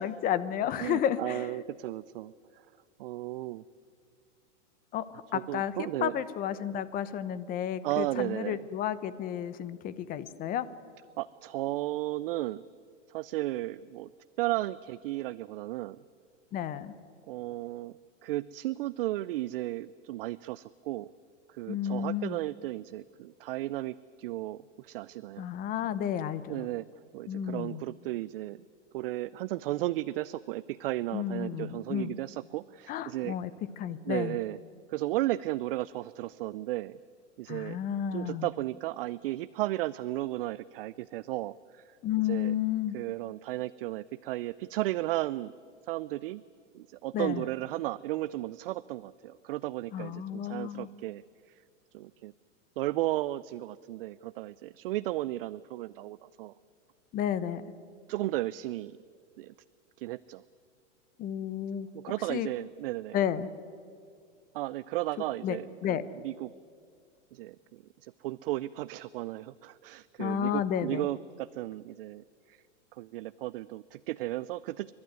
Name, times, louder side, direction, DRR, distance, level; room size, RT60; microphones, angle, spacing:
voice 1, 0.0-1.5 4.9-10.7 16.5-16.9 21.7-22.4 25.4-26.7 27.3-27.8 31.1-32.1 32.9-33.5 33.8-34.4 37.5-38.5 42.0-43.0 47.1-47.4 49.9-50.9 57.1-57.6 61.2-61.9 62.3-62.5 63.1-63.5 65.4-65.6 65.8-66.0 70.2-71.1, left 9 dB, 25° left, 15 dB, 0.8 m, -32 dB
voice 2, 0.8-2.6 3.0-3.6 5.3-6.2 7.8-8.7 11.2-12.6 13.1-14.1 14.4-16.0 17.3-21.1 21.5-25.5 26.5-26.8 27.1-28.6 28.9-33.4 34.1-34.6 34.9-37.0 37.4-37.8 38.1-42.0 42.2-42.5 42.9-45.5 45.8-46.4 46.7-51.2 51.5-51.6 51.9-52.3 52.8-56.5 58.1-59.0 59.4-59.5 60.0-60.4 61.9-63.2 64.5-66.5 67.3-72.6 73.0-74.9, right 16 dB, 50° right, 17 dB, 0.5 m, -34 dB
28.5 x 12.0 x 9.6 m, 2.2 s
hypercardioid pair, 140°, 36 cm